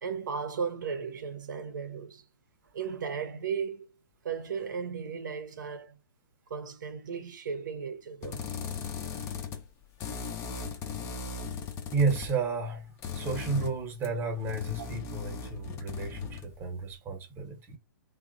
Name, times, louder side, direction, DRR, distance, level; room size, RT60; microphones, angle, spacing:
voice 1, 0.0-2.2 2.7-3.9 4.2-6.0 6.5-8.5, right 6 dB, 60° right, 0.6 m, -35 dB
sound 1, 8.2-9.7 10.0-12.4 13.0-16.6, left 6 dB, 25° left, 0.4 m, -38 dB
voice 2, 11.9-17.8, right 4 dB, 20° right, 0.8 m, -32 dB
2.9 x 2.1 x 2.5 m
figure-of-eight pair, 125°, 11 cm